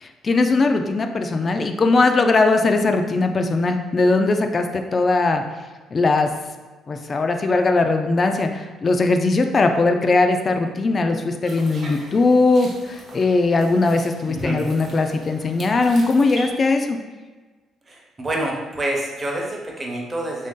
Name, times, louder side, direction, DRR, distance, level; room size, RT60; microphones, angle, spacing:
voice 1, 0.0-5.4 5.9-6.3 6.9-17.0, left 3 dB, 35° left, 6 dB, 0.3 m, -19 dB
sound 1, 11.4-16.5, right 2 dB, 50° right, 1.0 m, -42 dB
voice 2, 14.3-14.7 17.9-20.5, right 1 dB, 25° right, -1 dB, 0.8 m, -27 dB
3.2 x 2.7 x 3.6 m, 1.3 s
cardioid pair, 100°, 0 cm